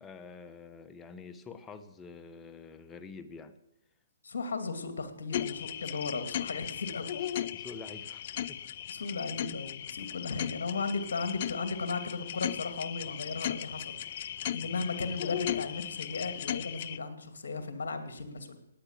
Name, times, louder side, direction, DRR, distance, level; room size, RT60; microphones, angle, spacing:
voice 1, 0.0-3.6 7.5-8.6 14.6-14.8, left 4 dB, 15° left, 10 dB, 1.2 m, -47 dB
voice 2, 4.2-7.1 8.9-18.6, left 4 dB, 70° left, 9 dB, 2.7 m, -36 dB
sound 1, 5.3-17.0, left 11 dB, 45° left, 0.6 m, -37 dB
17.5 x 9.8 x 7.6 m, 0.81 s
hypercardioid pair, 150°, 0 cm